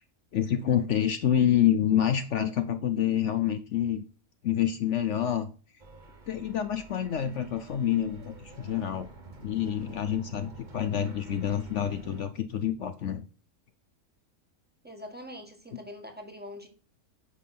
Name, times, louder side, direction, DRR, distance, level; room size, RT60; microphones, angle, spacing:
voice 1, 0.3-4.0 4.4-5.5 6.3-9.1 9.4-13.2, left 10 dB, 60° left, 11 dB, 0.9 m, -27 dB
sound 1, 5.8-12.2, right 3 dB, 35° right, 1.1 m, -48 dB
voice 2, 14.8-16.7, left 1 dB, 5° right, 3 dB, 1.7 m, -43 dB
9.4 x 5.7 x 5.9 m, 0.39 s
omnidirectional pair, 1.6 m